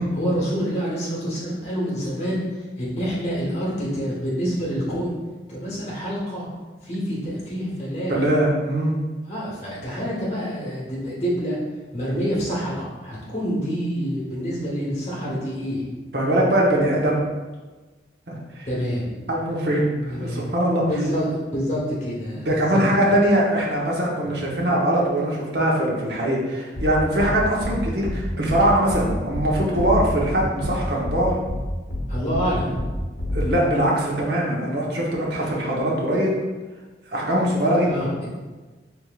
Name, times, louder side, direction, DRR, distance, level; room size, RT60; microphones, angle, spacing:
voice 1, 0.1-2.4 2.8-5.1 5.5-6.5 6.8-8.2 9.3-11.6 11.9-15.8 18.6-19.2 20.1-20.4 20.9-22.8 24.3-24.4 32.1-32.8 37.8-38.3, equal, 35° left, -7 dB, 1.4 m, -27 dB
voice 2, 8.1-9.0 16.1-17.2 18.3-18.7 19.3-20.8 22.4-31.4 33.3-36.3 37.1-38.0, right 1 dB, 65° right, -3 dB, 0.9 m, -22 dB
sound 1, 26.7-26.9 27.2-27.3 27.6-27.7 28.0-28.2 28.5-28.6 28.9-29.0 29.3-29.5 29.7-30.3 30.6-30.7 31.0-31.2 31.5-31.6 31.9-32.0 32.3-32.5 32.7-32.9 33.2-33.4, left 1 dB, 60° left, 0.9 m, -28 dB
4.5 x 3.6 x 2.4 m, 1.3 s
head